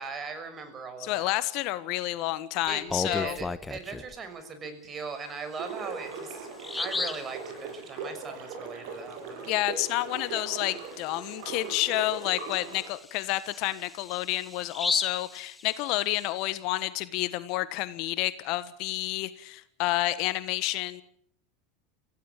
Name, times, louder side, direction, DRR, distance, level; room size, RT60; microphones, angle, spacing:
voice 1, 0.0-1.3 2.7-6.5 6.8-9.5, right 4 dB, 30° right, 8 dB, 6.2 m, -39 dB
voice 2, 1.0-3.4 9.5-21.0, left 17 dB, 60° left, 14 dB, 1.4 m, -30 dB
Bird vocalization bird call bird song, 2.7-4.1 5.6-5.7 6.1-6.2 6.6-7.3 10.8-10.9 11.3-11.4 12.0-16.2, left 3 dB, 15° left, 1.2 m, -34 dB
sound 1, 5.6-12.9, right 4 dB, 65° right, 7.7 m, -40 dB
24.5 x 16.5 x 8.7 m, 0.67 s
hypercardioid pair, 95°, 0 cm